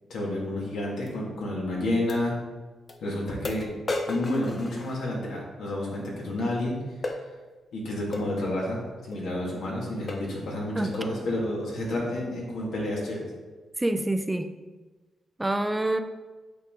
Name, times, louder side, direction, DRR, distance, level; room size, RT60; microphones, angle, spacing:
voice 1, 0.1-2.4 3.0-3.7 4.1-6.8 7.7-8.8 9.1-13.2, left 1 dB, 85° left, -3 dB, 2.1 m, -30 dB
sound 1, 1.1-1.2 2.1-2.2 2.9-3.0 3.4-5.4 7.0-7.2 8.1-8.3 9.1-9.3 9.7-9.8 10.1-10.4 10.9-11.2, left 2 dB, 35° left, 0.8 m, -34 dB
voice 2, 10.8-11.5 13.8-14.5 15.4-16.0, right 1 dB, 15° right, 8 dB, 0.4 m, -27 dB
8.2 x 4.8 x 3.8 m, 1.3 s
cardioid pair, 105°, 0 cm